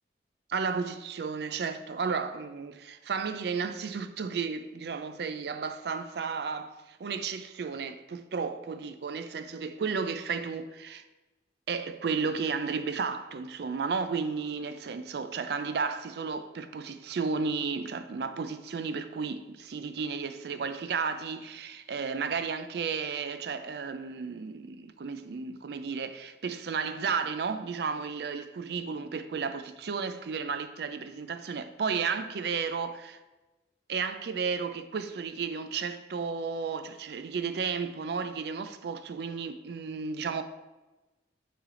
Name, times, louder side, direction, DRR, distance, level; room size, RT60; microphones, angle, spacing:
voice 1, 0.5-11.0 11.7-33.2 33.9-40.4, right 5 dB, 60° right, 0.4 m, -33 dB
9.5 x 3.3 x 3.7 m
head